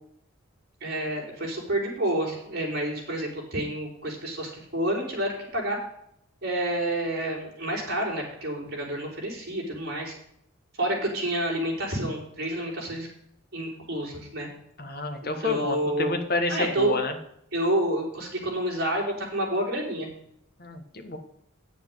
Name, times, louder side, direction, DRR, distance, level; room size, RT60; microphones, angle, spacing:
voice 1, 0.8-5.8 6.4-10.1 10.8-13.1 13.5-14.5 15.2-16.2 16.5-17.0 17.5-20.1, right 1 dB, 50° right, -2 dB, 4.6 m, -29 dB
voice 2, 14.8-17.1 20.6-21.2, left 2 dB, 45° left, 5 dB, 1.5 m, -29 dB
9.1 x 7.2 x 7.6 m, 0.72 s
head